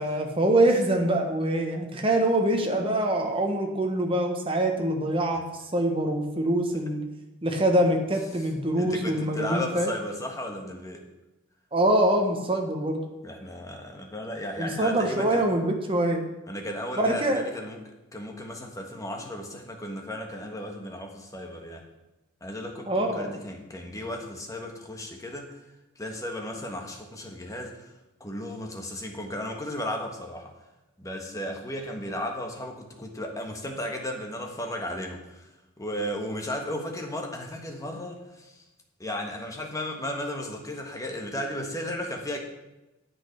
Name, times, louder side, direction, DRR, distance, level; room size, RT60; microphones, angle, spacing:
voice 1, 0.0-5.4 5.7-7.0 7.4-9.9 11.7-13.0 14.6-16.2 17.0-17.4 22.9-23.3, right 1 dB, 25° right, 2 dB, 1.4 m, -24 dB
voice 2, 8.8-11.0 13.2-15.4 16.5-17.8 18.1-21.8 22.4-25.6 26.0-27.9 28.2-30.5 31.0-35.5 35.8-38.6 39.0-42.4, left 1 dB, 15° left, 2 dB, 1.4 m, -35 dB
9.8 x 7.7 x 5.9 m, 1.0 s
head